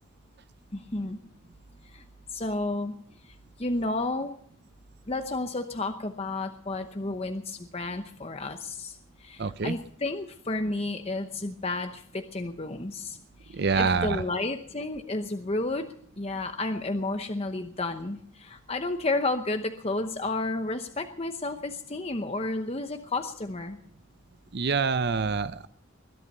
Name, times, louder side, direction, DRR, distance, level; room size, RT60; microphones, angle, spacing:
voice 1, 0.7-1.2 1.8-2.0 2.3-4.4 5.1-23.8, left 2 dB, 30° left, 7 dB, 0.8 m, -32 dB
voice 2, 9.4-9.7 13.5-14.2 24.5-25.7, right 4 dB, 50° right, 13 dB, 0.6 m, -26 dB
21.0 x 11.5 x 5.4 m, 0.64 s
head